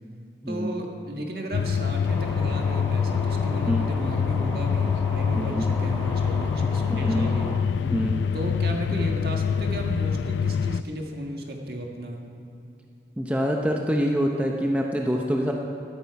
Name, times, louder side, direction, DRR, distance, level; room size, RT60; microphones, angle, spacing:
voice 1, 0.5-7.6 8.3-12.2, right 1 dB, 55° right, 1 dB, 1.7 m, -34 dB
sound 1, 1.5-10.8, left 6 dB, 85° left, 0.3 m, -25 dB
sound 2, 2.1-7.6, equal, 10° left, 1.3 m, -38 dB
voice 2, 5.3-5.7 6.9-7.3 7.8-8.2 13.2-15.5, equal, 5° right, 0 dB, 0.7 m, -25 dB
14.0 x 12.5 x 4.7 m, 2.7 s
head